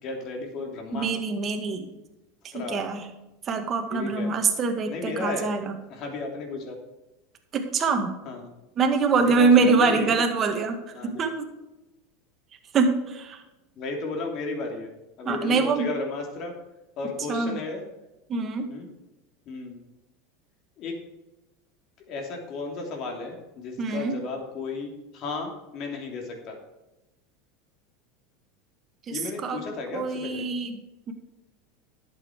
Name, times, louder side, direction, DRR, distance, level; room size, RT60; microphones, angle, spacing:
voice 1, 0.0-1.1 2.5-2.9 3.9-4.3 4.9-5.5 5.9-6.8 8.2-8.5 9.2-10.2 10.9-11.2 13.8-14.9 15.2-16.5 17.0-17.8 18.7-18.9 19.4-19.8 20.8-21.0 22.1-26.6 29.1-30.4, left 3 dB, 50° left, 2 dB, 3.2 m, -34 dB
voice 2, 0.9-1.9 2.5-3.0 3.5-5.8 7.5-8.1 8.8-11.5 12.7-13.4 15.3-15.9 17.3-17.6 18.3-18.7 23.8-24.2 29.1-29.6 29.9-30.8 31.1-31.2, right 4 dB, 35° right, 5 dB, 2.0 m, -24 dB
11.5 x 8.0 x 5.0 m, 1.0 s
hypercardioid pair, 90°, 0 cm